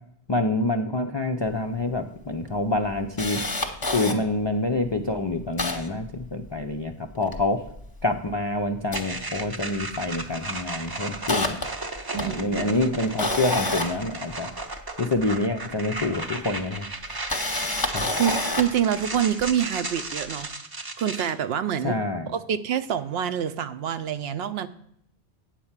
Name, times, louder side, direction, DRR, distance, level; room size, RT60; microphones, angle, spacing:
voice 1, 0.3-3.4 3.9-7.6 8.0-11.6 12.1-14.5 15.0-17.2 17.9-18.1 21.8-22.3, left 2 dB, 45° left, 0.3 m, -27 dB
Camera, 1.6-1.7 1.9-2.0 2.5-4.2 4.8-4.9 5.1-6.8 7.1-8.3 8.8-9.9 10.2-10.5 10.9-14.9 16.0-16.1 17.0-18.8 19.4-19.5, left 2 dB, 25° left, 0.8 m, -29 dB
sound 1, 8.9-21.3, right 2 dB, 25° right, 0.6 m, -35 dB
voice 2, 12.1-12.8 18.2-20.5 21.0-21.9 22.3-24.7, right 9 dB, 70° right, 0.8 m, -26 dB
9.0 x 4.3 x 7.2 m
omnidirectional pair, 1.1 m